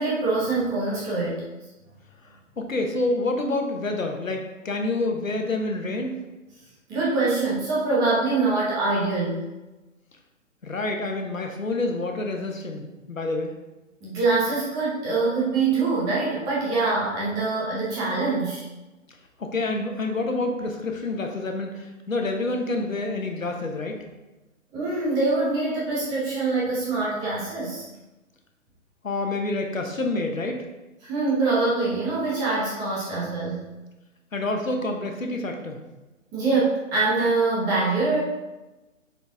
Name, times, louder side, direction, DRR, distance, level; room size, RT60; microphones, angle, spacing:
voice 1, 0.0-1.4 6.9-9.4 14.0-18.6 24.7-27.9 31.0-33.7 36.3-38.2, right 3 dB, 10° right, -6 dB, 0.8 m, -24 dB
voice 2, 2.6-6.1 10.6-13.5 19.4-24.0 29.0-30.6 34.3-35.8, left 2 dB, 75° left, 3 dB, 1.2 m, -28 dB
6.9 x 4.5 x 3.6 m, 1.1 s
figure-of-eight pair, 135°, 40 cm